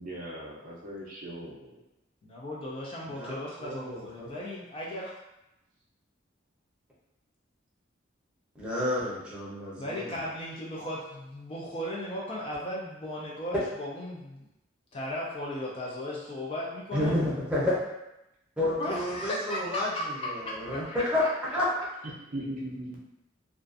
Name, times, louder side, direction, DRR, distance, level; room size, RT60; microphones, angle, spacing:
voice 1, 0.0-1.8 22.2-23.0, right 1 dB, 40° right, -4 dB, 0.5 m, -39 dB
voice 2, 2.2-5.1 9.8-14.5 14.9-17.2 18.8-21.3, left 1 dB, 25° left, -4 dB, 0.3 m, -36 dB
voice 3, 3.2-4.3 8.6-10.2 16.9-17.8 18.6-21.2 21.5-21.9, left 1 dB, 5° right, -8 dB, 0.7 m, -30 dB
2.4 x 2.3 x 2.4 m, 0.91 s
head